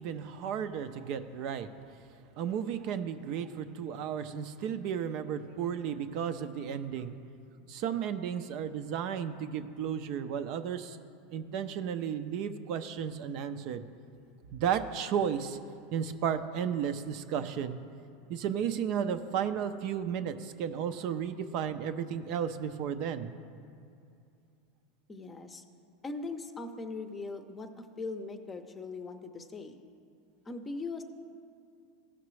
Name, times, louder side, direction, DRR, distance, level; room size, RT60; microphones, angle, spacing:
voice 1, 0.0-1.7 2.4-7.2 7.7-11.0 11.3-13.8 14.5-15.6 15.9-17.8 18.3-23.3, right 8 dB, 55° right, 9 dB, 0.5 m, -33 dB
voice 2, 25.1-25.6 26.0-29.8 30.5-31.0, left 3 dB, 20° left, 7 dB, 0.6 m, -40 dB
15.0 x 5.9 x 3.2 m, 2.5 s
supercardioid pair, 120°, 0 cm